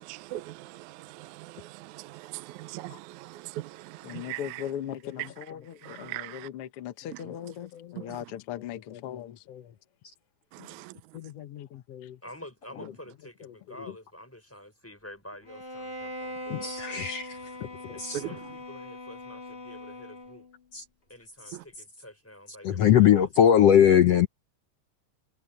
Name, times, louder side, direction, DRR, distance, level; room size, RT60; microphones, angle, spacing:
voice 1, 0.0-4.4 5.8-6.5 10.5-10.7, right 17 dB, 75° right, 1.8 m, -41 dB
voice 2, 4.0-9.4 10.6-10.7, left 10 dB, 55° left, 1.7 m, -38 dB
voice 3, 12.2-17.1 17.9-20.5 21.1-23.7, left 1 dB, 5° left, 5.6 m, -48 dB
Bowed string instrument, 15.4-20.6, equal, 20° left, 2.1 m, -41 dB
voice 4, 16.5-17.4 18.0-18.2 20.7-20.8 22.6-24.3, left 9 dB, 75° left, 1.4 m, -20 dB
omnidirectional pair, 4.0 m